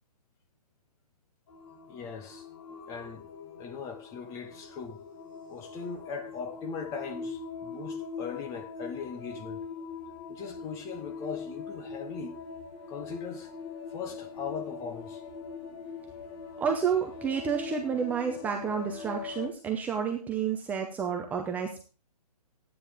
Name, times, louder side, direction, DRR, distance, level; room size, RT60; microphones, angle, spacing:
sound 1, 1.5-19.5, left 5 dB, 30° left, 1.6 m, -42 dB
voice 1, 1.7-2.5 2.7-3.3 3.6-5.0 5.5-9.6 10.3-12.4 12.9-13.5 13.9-15.2, left 6 dB, 15° left, 0.9 m, -40 dB
voice 2, 16.6-21.8, right 7 dB, 10° right, 0.7 m, -30 dB
13.0 x 9.4 x 3.5 m
hypercardioid pair, 155°, 21 cm